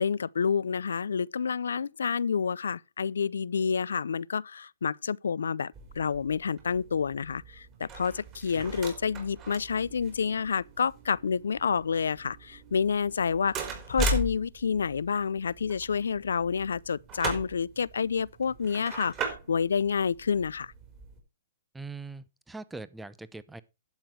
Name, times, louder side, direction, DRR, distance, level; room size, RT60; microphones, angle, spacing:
voice 1, 0.0-20.7, left 6 dB, 85° left, 0.5 m, -29 dB
sound 1, 5.7-21.2, right 2 dB, 25° right, 4.5 m, -39 dB
voice 2, 21.7-23.6, right 3 dB, 5° right, 0.7 m, -42 dB
11.5 x 8.0 x 4.6 m
hypercardioid pair, 145°, 0 cm